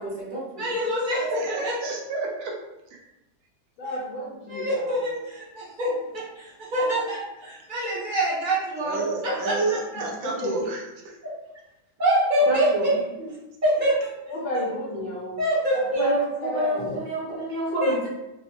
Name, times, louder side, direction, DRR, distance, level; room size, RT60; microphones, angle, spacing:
voice 1, 0.0-0.6 12.5-12.9 13.2-13.3 16.0-18.0, right 1 dB, 60° right, -6 dB, 1.5 m, -28 dB
voice 2, 0.6-1.7 4.5-10.0 12.0-12.9 13.6-14.1 15.4-16.0 17.8-18.0, right 1 dB, 40° right, -7 dB, 0.7 m, -25 dB
voice 3, 1.2-2.5 2.9-3.0 8.8-11.2, right 3 dB, 80° right, 0 dB, 1.4 m, -30 dB
voice 4, 3.8-4.7 5.0-5.1 10.2-10.5 12.7-12.8 14.3-15.4 15.8-17.0, equal, 85° left, -4 dB, 1.5 m, -32 dB
4.0 x 2.1 x 2.8 m, 0.93 s
omnidirectional pair, 2.1 m